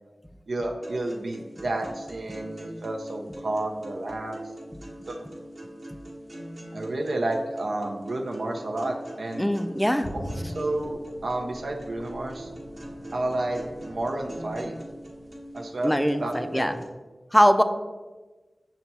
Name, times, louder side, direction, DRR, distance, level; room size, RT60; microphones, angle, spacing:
voice 1, 0.5-4.4 5.1-5.3 6.7-9.5 10.1-12.5 13.1-14.8 15.5-16.8, right 2 dB, 80° right, 2 dB, 0.4 m, -31 dB
sound 1, 0.8-16.8, right 1 dB, 45° right, 1.0 m, -42 dB
voice 2, 9.4-10.1 15.8-16.7 17.3-17.6, equal, 5° left, 10 dB, 0.3 m, -22 dB
sound 2, 10.0-15.8 16.2-16.3, equal, 55° left, 0.7 m, -42 dB
5.8 x 2.2 x 4.0 m, 1.2 s
wide cardioid pair, 50°, 0 cm